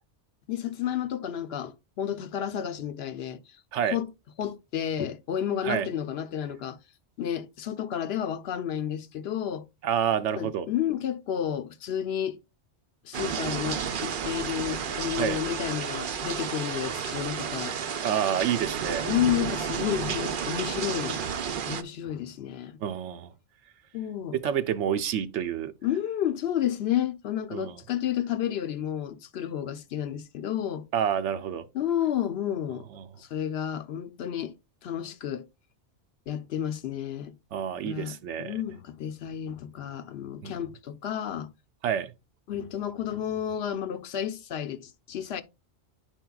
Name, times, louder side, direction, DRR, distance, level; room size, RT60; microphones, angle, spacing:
voice 1, 0.5-3.4 3.8-4.1 4.4-6.8 7.2-9.7 10.4-12.4 13.0-17.8 19.0-21.2 21.7-22.8 23.9-24.4 25.8-30.9 31.7-32.9 33.2-34.5 34.8-35.5 36.3-37.3 37.8-41.5 42.5-45.4, left 10 dB, 65° left, 0.8 m, -31 dB
voice 2, 9.8-10.7 15.1-15.4 18.0-19.0 22.8-23.3 24.3-25.7 27.5-27.8 30.9-31.6 33.0-33.1 37.5-38.6 40.4-40.6 41.8-42.1, right 8 dB, 90° right, 1.0 m, -28 dB
sound 1, 13.1-21.8, right 7 dB, 55° right, 0.7 m, -32 dB
10.5 x 4.5 x 2.3 m
omnidirectional pair, 1.2 m